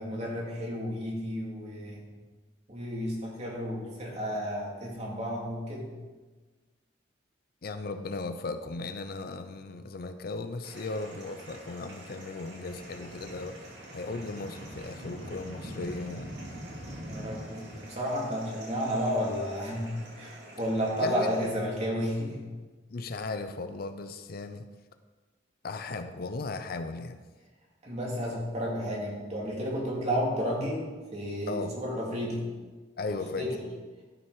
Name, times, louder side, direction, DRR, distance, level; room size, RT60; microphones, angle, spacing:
voice 1, 0.0-2.1 2.7-5.9 17.0-22.5 27.8-32.5 33.4-33.5, equal, 35° right, -3 dB, 2.3 m, -32 dB
voice 2, 7.6-13.6 13.9-16.3 21.0-21.5 22.9-24.6 25.6-27.2 31.5-31.7 33.0-33.6, left 3 dB, 50° left, 9 dB, 0.5 m, -37 dB
sound 1, 10.6-21.5, right 1 dB, 65° right, 2.6 m, -44 dB
12.5 x 5.9 x 4.8 m, 1.3 s
head